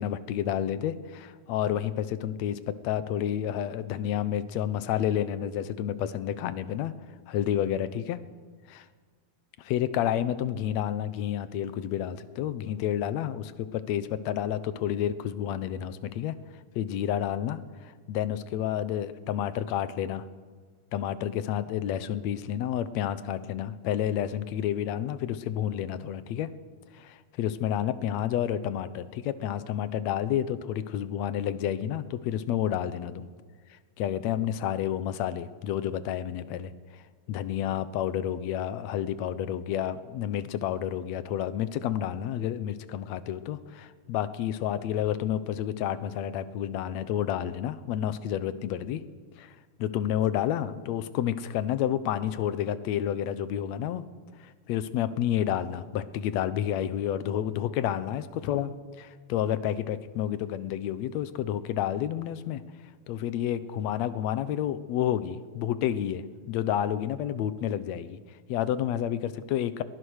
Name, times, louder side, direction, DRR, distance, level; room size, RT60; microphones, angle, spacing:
voice 1, 0.0-6.9 7.3-8.2 8.7-8.9 9.6-16.4 16.8-17.6 18.1-20.3 20.9-26.5 26.9-33.3 34.0-36.7 37.3-49.0 49.4-49.5 49.8-54.0 54.4-62.6 63.1-68.2 68.5-69.8, left 10 dB, 70° left, 14 dB, 2.0 m, -30 dB
22.0 x 19.0 x 6.5 m, 1.5 s
omnidirectional pair, 3.5 m